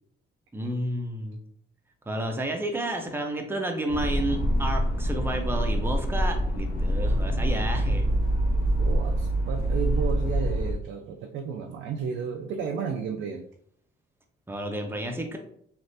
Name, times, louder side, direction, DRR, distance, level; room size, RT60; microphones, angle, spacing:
voice 1, 0.5-1.4 2.1-8.1 14.5-15.4, right 1 dB, 10° right, 3 dB, 0.6 m, -31 dB
sound 1, 3.9-10.7, right 1 dB, 55° left, 0.7 m, -25 dB
voice 2, 8.8-13.5, right 6 dB, 80° right, 3 dB, 0.4 m, -33 dB
3.2 x 2.5 x 2.6 m, 0.66 s
cardioid pair, 90°, 20 cm